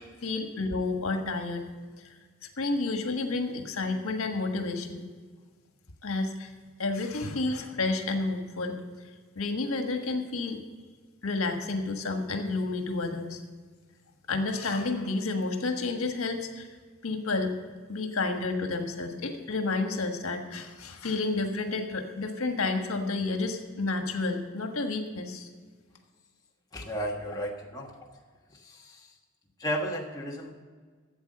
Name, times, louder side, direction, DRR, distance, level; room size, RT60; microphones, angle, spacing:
voice 1, 0.2-1.7 2.0-2.1 2.6-5.1 6.0-6.5 6.8-8.8 9.3-10.6 11.2-13.4 14.3-16.7 17.0-17.5 17.9-25.5, left 3 dB, 85° left, 5 dB, 1.4 m, -30 dB
voice 2, 26.7-28.0 28.6-29.1 29.6-30.5, equal, 15° left, -2 dB, 1.4 m, -33 dB
13.0 x 8.1 x 6.7 m, 1.5 s
head